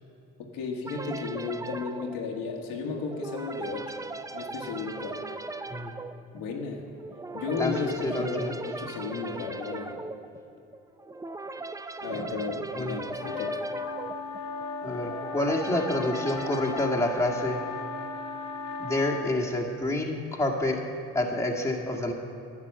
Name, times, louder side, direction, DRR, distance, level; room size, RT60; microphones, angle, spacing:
voice 1, 0.4-4.0 4.3-5.2 6.3-6.8 7.3-10.0 12.0-13.6, left 4 dB, 75° left, 1 dB, 1.6 m, -34 dB
sound 1, 0.8-18.0, right 3 dB, 10° right, 0.4 m, -39 dB
voice 2, 7.6-8.6 12.1-12.3 12.7-12.9 14.8-17.6 18.8-20.8 21.1-22.1, left 1 dB, 10° left, -1 dB, 1.8 m, -28 dB
sound 2, 13.2-19.4, left 4 dB, 90° left, 1.1 m, -36 dB
10.5 x 8.9 x 6.6 m, 2.7 s
supercardioid pair, 70°, 35 cm